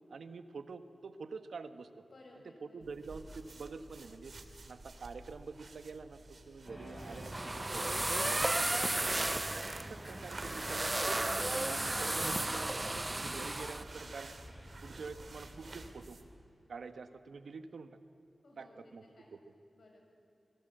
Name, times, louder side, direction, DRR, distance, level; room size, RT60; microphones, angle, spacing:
voice 1, 0.1-1.9 2.6-4.3 4.7-8.2 8.6-8.8 9.8-11.3 11.5-12.8 13.2-14.3 14.8-16.2 16.7-18.0 18.6-19.0 19.3-19.4, right 4 dB, 85° right, 9 dB, 1.4 m, -47 dB
voice 2, 2.1-2.9 8.7-9.3 18.4-19.3 19.8-20.0, left 1 dB, 65° left, 0 dB, 7.6 m, -56 dB
sound 1, 2.8-16.4, right 3 dB, 55° right, 2.4 m, -51 dB
sound 2, 6.7-15.9, equal, 5° left, 4.9 m, -51 dB
sound 3, 7.0-13.8, right 2 dB, 25° right, 0.6 m, -34 dB
28.5 x 22.0 x 8.0 m, 3.0 s
wide cardioid pair, 85°, 0 cm